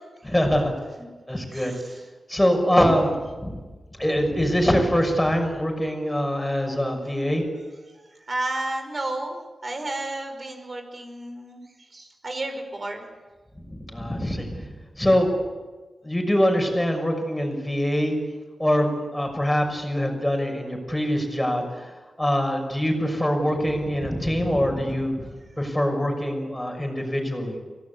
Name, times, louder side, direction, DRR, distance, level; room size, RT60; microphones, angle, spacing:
voice 1, 0.2-0.7 1.3-1.7 2.3-3.6 4.0-7.4 13.7-14.7 15.0-15.3 16.0-18.1 18.6-21.9 22.2-25.3 25.6-27.6, equal, 10° left, 3 dB, 6.2 m, -23 dB
voice 2, 1.5-2.0 7.9-11.6 11.9-13.1, right 2 dB, 40° right, 5 dB, 5.5 m, -32 dB
25.0 x 17.5 x 8.3 m, 1.3 s
wide cardioid pair, 80°, 0 cm